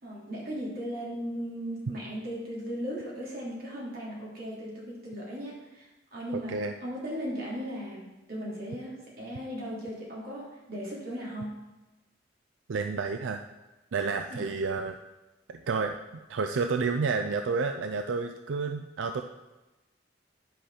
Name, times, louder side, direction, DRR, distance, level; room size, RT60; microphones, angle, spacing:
voice 1, 0.0-11.6 14.3-14.6, equal, 55° right, -5 dB, 3.0 m, -37 dB
voice 2, 6.3-6.7 12.7-13.4 13.9-15.0 15.5-19.2, right 4 dB, 90° right, 6 dB, 0.4 m, -30 dB
10.0 x 5.1 x 5.5 m, 1.1 s
head